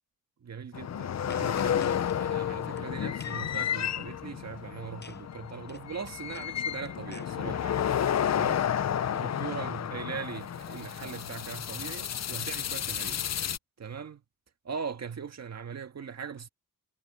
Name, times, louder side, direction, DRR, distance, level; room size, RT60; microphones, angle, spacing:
voice 1, 0.4-7.8 8.3-8.7 9.1-13.2 13.8-14.2 14.6-16.5, right 6 dB, 50° right, 1.7 m, -40 dB
sound 1, 0.7-13.6, left 9 dB, 50° left, 0.8 m, -31 dB
sound 2, 1.3-2.2 2.6-2.8 3.2-3.6 5.0-5.2 5.5-7.3, left 4 dB, 30° left, 7.8 m, -50 dB
cardioid pair, 105°, 33 cm